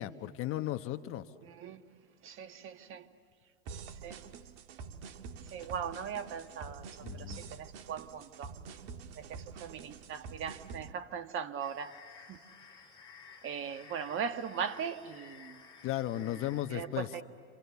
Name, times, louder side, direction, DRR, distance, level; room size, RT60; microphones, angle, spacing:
voice 1, 0.0-1.3 7.0-7.6 15.8-17.1, left 13 dB, 40° left, 1.3 m, -35 dB
voice 2, 1.4-1.8 2.2-3.1 4.0-4.2 5.5-8.5 9.2-12.4 13.4-15.6 16.7-17.2, right 7 dB, 40° right, 1.6 m, -39 dB
sound 1, 3.7-10.9, right 5 dB, 65° right, 1.6 m, -47 dB
sound 2, 11.6-16.6, left 6 dB, 15° left, 7.2 m, -54 dB
29.0 x 28.0 x 7.1 m
hypercardioid pair, 105°, 32 cm